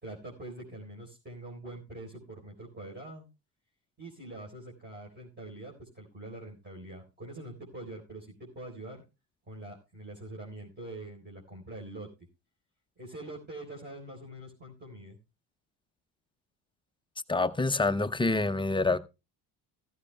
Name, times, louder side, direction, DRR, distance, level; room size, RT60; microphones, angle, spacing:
voice 1, 0.0-3.3 4.0-9.0 9.5-12.1 13.0-15.2, right 1 dB, 25° right, 4.1 m, -44 dB
voice 2, 17.3-19.0, left 3 dB, 10° left, 0.6 m, -26 dB
15.0 x 14.0 x 2.2 m
supercardioid pair, 80°, 45 cm